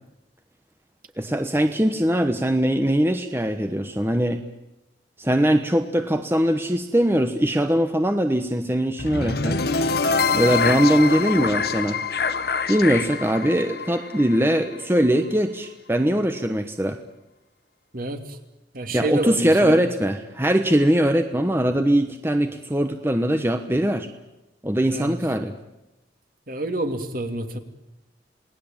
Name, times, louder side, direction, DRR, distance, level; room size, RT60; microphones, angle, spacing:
voice 1, 1.2-4.4 5.2-9.6 10.3-12.0 12.7-17.0 18.9-24.1 24.6-25.6, right 1 dB, 15° right, 7 dB, 1.1 m, -21 dB
sound 1, 9.0-15.1, left 4 dB, 60° left, 1.2 m, -25 dB
voice 2, 18.7-19.8 24.9-25.2 26.5-27.6, right 2 dB, 50° right, 6 dB, 2.6 m, -28 dB
28.5 x 19.0 x 8.9 m, 0.95 s
head